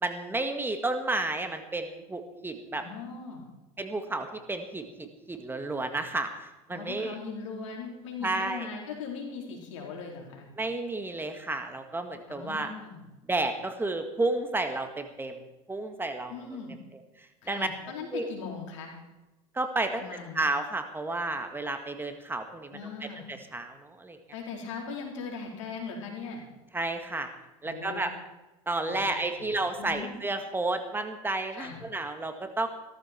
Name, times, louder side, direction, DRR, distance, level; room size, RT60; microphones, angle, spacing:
voice 1, 0.0-2.8 3.8-7.2 8.2-8.7 10.6-12.7 13.3-15.4 15.7-16.3 17.2-17.7 18.1-18.3 19.5-20.0 20.3-24.2 26.7-27.3 27.6-28.1 28.7-32.7, right 2 dB, 15° right, 6 dB, 1.8 m, -31 dB
voice 2, 2.7-3.4 6.7-10.5 12.3-13.0 16.3-16.7 17.4-18.9 19.9-20.4 22.7-23.3 24.3-26.4 27.6-28.0 28.9-29.1 29.4-30.1 31.5-31.8, left 5 dB, 85° left, 1 dB, 4.2 m, -39 dB
16.5 x 14.0 x 4.5 m, 1.0 s
hypercardioid pair, 90°, 15 cm